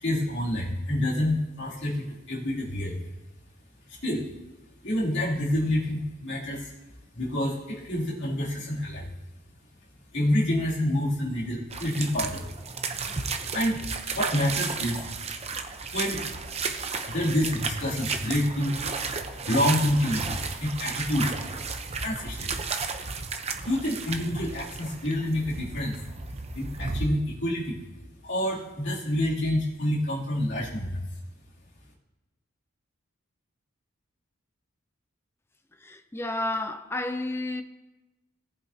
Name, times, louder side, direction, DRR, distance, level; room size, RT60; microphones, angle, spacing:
voice 1, 0.0-3.1 3.9-4.3 4.8-6.7 7.1-9.1 10.1-12.5 13.5-13.8 14.1-15.1 15.9-16.2 17.1-18.8 19.5-21.3 22.0-22.5 23.6-26.0 26.5-27.8 28.2-31.1, left 1 dB, 65° left, 2.8 m, -27 dB
sound 1, 11.7-27.1, right 4 dB, 30° right, 0.8 m, -33 dB
voice 2, 35.8-37.6, left 1 dB, 10° left, 0.6 m, -31 dB
18.5 x 8.5 x 2.8 m
head